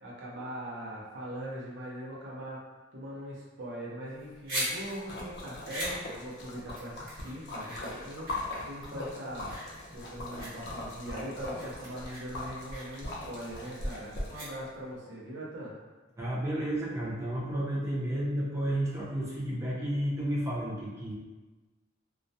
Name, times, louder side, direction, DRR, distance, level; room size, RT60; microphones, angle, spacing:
voice 1, 0.0-2.6 2.9-9.5 9.9-15.7, right 1 dB, 65° right, -5 dB, 0.7 m, -41 dB
sound 1, 4.1-15.0, right 1 dB, 50° right, 1.0 m, -41 dB
Splash splatter, 4.8-14.4, left 1 dB, 60° left, 0.5 m, -40 dB
voice 2, 16.2-21.1, right 1 dB, 15° right, -6 dB, 0.5 m, -32 dB
2.3 x 2.1 x 2.6 m, 1.2 s
head